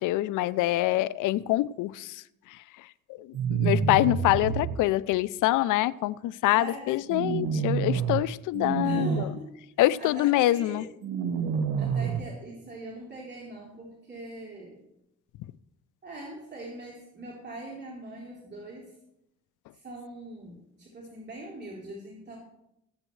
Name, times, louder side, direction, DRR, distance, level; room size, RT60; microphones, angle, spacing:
voice 1, 0.0-2.2 3.2-9.3 9.8-10.9, left 16 dB, 90° left, 19 dB, 0.5 m, -25 dB
sound 1, 3.3-4.8 7.1-8.2 8.5-9.2 11.0-12.2, right 6 dB, 90° right, 1.0 m, -28 dB
voice 2, 6.5-7.0 8.8-9.5 10.0-10.9 11.8-14.8 16.0-18.9 19.7-22.4, right 2 dB, 35° right, -5 dB, 3.6 m, -42 dB
22.0 x 8.8 x 3.2 m, 0.83 s
cardioid pair, 90°, 30 cm